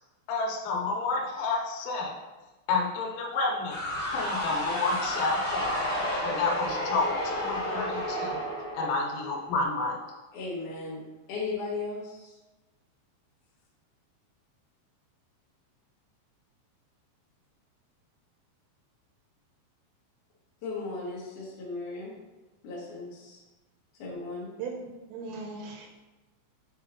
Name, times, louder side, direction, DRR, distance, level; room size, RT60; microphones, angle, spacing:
voice 1, 0.3-2.2 2.7-3.8 4.1-5.8 6.2-8.4 8.7-10.0, left 3 dB, 90° left, 0 dB, 3.2 m, -30 dB
sound 1, 3.7-9.5, equal, 40° left, 1.9 m, -31 dB
voice 2, 10.3-11.0 11.3-12.4 20.6-22.1 22.6-23.4 24.0-24.5, left 3 dB, 70° left, -7 dB, 1.9 m, -36 dB
voice 3, 24.6-25.9, right 4 dB, 80° right, 1 dB, 2.8 m, -38 dB
7.6 x 4.5 x 2.9 m, 1.2 s
omnidirectional pair, 5.4 m